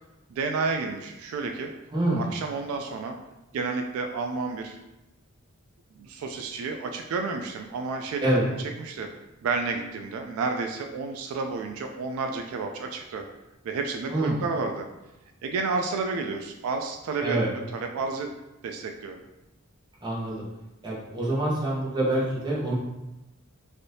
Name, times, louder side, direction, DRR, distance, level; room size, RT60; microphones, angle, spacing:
voice 1, 0.3-1.7 2.2-3.2 3.5-4.8 5.9-8.3 8.8-9.1 9.4-13.2 13.6-14.9 15.4-17.4 17.7-18.3 18.6-19.2, right 4 dB, 75° right, 4 dB, 0.3 m, -30 dB
voice 2, 1.9-2.3 8.2-8.5 14.1-14.4 17.2-17.5 20.0-20.4 20.8-22.7, right 1 dB, 20° right, -6 dB, 0.8 m, -26 dB
3.3 x 2.6 x 2.7 m, 0.99 s
head